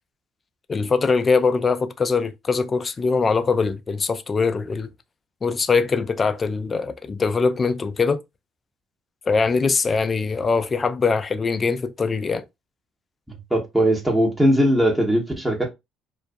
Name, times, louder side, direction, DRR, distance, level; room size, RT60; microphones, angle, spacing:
voice 1, 0.7-4.9 5.4-8.2 9.3-12.4, left 4 dB, 35° left, 0.4 m, -22 dB
voice 2, 13.3-15.7, equal, 5° right, 0.8 m, -20 dB
2.3 x 2.2 x 2.5 m
hypercardioid pair, 65°, 0 cm